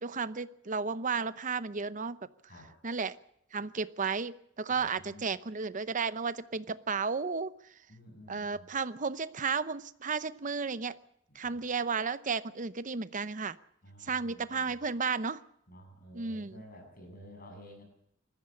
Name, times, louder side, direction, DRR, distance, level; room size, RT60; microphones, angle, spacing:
voice 1, 0.0-2.2 2.8-3.2 3.5-7.5 8.3-11.0 11.3-13.6 14.0-15.4 16.1-16.6, right 5 dB, 40° right, 14 dB, 0.8 m, -33 dB
voice 2, 4.7-5.2 7.9-8.7 11.3-11.6 13.8-14.8 15.7-17.8, equal, 50° left, 4 dB, 7.6 m, -52 dB
20.5 x 14.5 x 8.7 m, 0.75 s
head